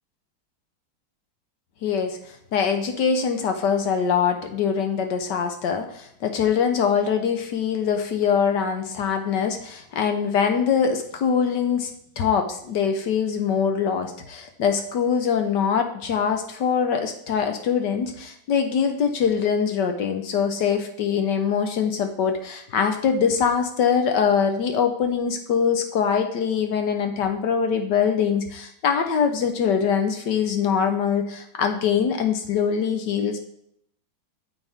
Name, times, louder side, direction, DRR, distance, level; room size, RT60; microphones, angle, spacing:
voice 1, 1.8-2.2 2.5-11.9 12.2-33.4, left 7 dB, 65° left, 6 dB, 1.4 m, -23 dB
9.3 x 7.2 x 3.5 m, 0.71 s
omnidirectional pair, 2.1 m